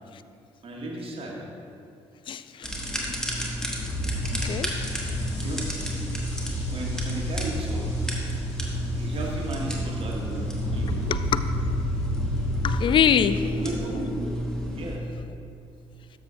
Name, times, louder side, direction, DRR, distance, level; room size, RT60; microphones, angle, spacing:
voice 1, 0.6-1.4 5.4-5.6 6.4-7.8 9.0-11.1 13.3-14.3 14.7-15.0, right 2 dB, 40° right, -1 dB, 1.4 m, -35 dB
voice 2, 2.3-2.7 4.3-4.7 11.1-11.4 12.6-13.5, left 8 dB, 35° left, 12 dB, 0.3 m, -24 dB
sound 1, 2.6-15.0, equal, 5° left, 1.4 m, -32 dB
sound 2, 3.8-12.7, equal, 80° left, 0.9 m, -31 dB
13.0 x 6.0 x 2.5 m, 2.6 s
figure-of-eight pair, 45°, 15 cm